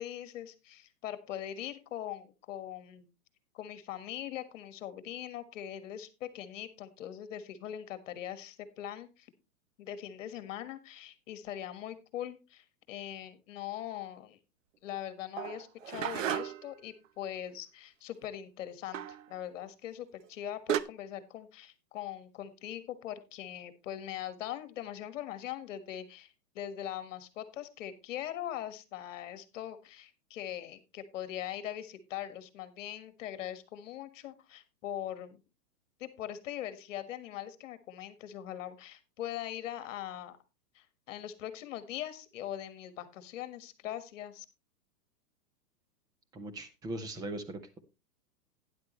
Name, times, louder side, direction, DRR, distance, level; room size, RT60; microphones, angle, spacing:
voice 1, 0.0-3.1 3.5-9.3 9.8-14.4 14.8-19.0 19.3-35.4 36.0-40.4 40.7-44.4, left 11 dB, 50° left, 13 dB, 1.6 m, -41 dB
sound 1, 15.4-16.8 18.9-19.2 20.2-20.3 20.7-20.8, right 10 dB, 50° right, 0.8 m, -33 dB
voice 2, 46.3-47.8, right 2 dB, 10° right, 10 dB, 0.7 m, -40 dB
12.0 x 9.9 x 3.1 m, 0.27 s
hypercardioid pair, 145°, 48 cm